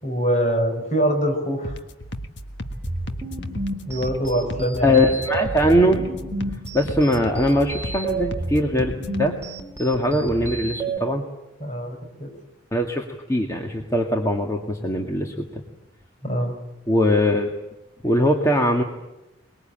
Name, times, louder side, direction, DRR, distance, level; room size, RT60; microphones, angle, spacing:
voice 1, 0.0-1.7 3.9-5.0 11.6-12.3 16.2-16.5, right 1 dB, 35° left, 3 dB, 6.2 m, -24 dB
sound 1, 1.6-9.3, equal, 60° left, 1.6 m, -35 dB
sound 2, 2.7-11.0, right 3 dB, 15° right, 2.7 m, -32 dB
voice 2, 4.8-6.1 6.7-9.3 9.8-11.2 12.7-15.3 16.9-17.5 18.0-18.8, left 1 dB, 15° left, 1 dB, 1.9 m, -21 dB
24.0 x 22.5 x 9.0 m, 0.96 s
head